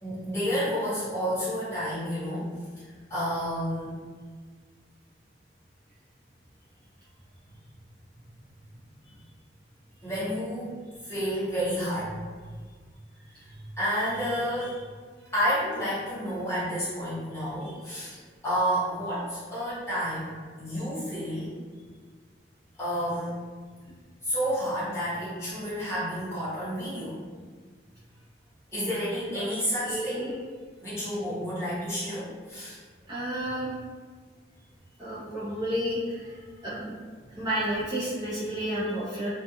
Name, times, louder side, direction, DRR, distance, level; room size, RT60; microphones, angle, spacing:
voice 1, 0.0-3.9 10.0-10.7 11.0-12.2 13.3-13.5 13.8-14.8 15.3-18.2 18.4-20.3 20.6-21.5 22.8-23.4 24.2-27.1 28.7-30.3 30.8-32.8, equal, 15° left, -12 dB, 1.2 m, -30 dB
voice 2, 29.8-30.3 33.1-33.7 35.0-37.0 37.4-39.3, equal, 25° right, -10 dB, 0.4 m, -31 dB
2.3 x 2.2 x 2.9 m, 1.5 s
head